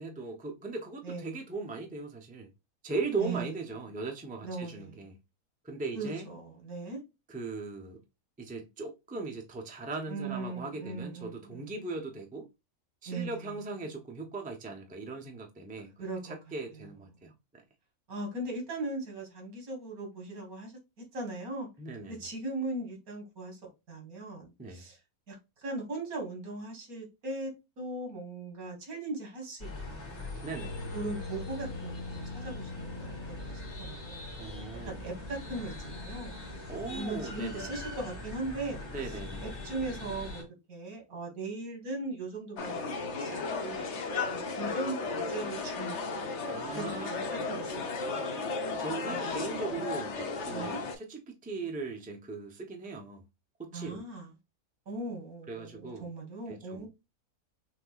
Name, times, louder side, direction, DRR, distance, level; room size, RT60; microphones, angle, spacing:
voice 1, 0.0-2.5 2.8-5.2 5.6-6.3 7.3-8.0 8.4-12.5 13.0-15.9 16.2-17.6 21.8-22.2 24.6-24.9 30.4-30.8 34.4-34.9 36.7-37.8 38.9-39.5 46.5-47.2 48.8-53.2 53.6-54.0 55.5-56.1 56.5-56.9, right 3 dB, 10° right, 0.6 m, -38 dB
voice 2, 3.2-3.5 4.4-5.0 5.9-7.0 10.1-11.8 13.1-13.5 16.0-16.4 16.7-16.8 18.1-20.7 21.0-21.7 22.1-25.0 25.3-30.4 30.9-34.3 34.8-36.4 36.9-39.1 39.4-46.0 46.7-47.0 47.5-48.4 49.0-49.4 50.5-50.8 53.7-54.3 54.9-56.9, right 2 dB, 75° right, 2.2 m, -39 dB
sound 1, 29.6-40.4, left 2 dB, 85° left, 1.9 m, -42 dB
sound 2, 30.6-37.2, left 3 dB, 40° left, 1.5 m, -44 dB
sound 3, 42.6-51.0, left 4 dB, 55° left, 1.1 m, -34 dB
5.9 x 2.9 x 2.4 m
omnidirectional pair, 1.5 m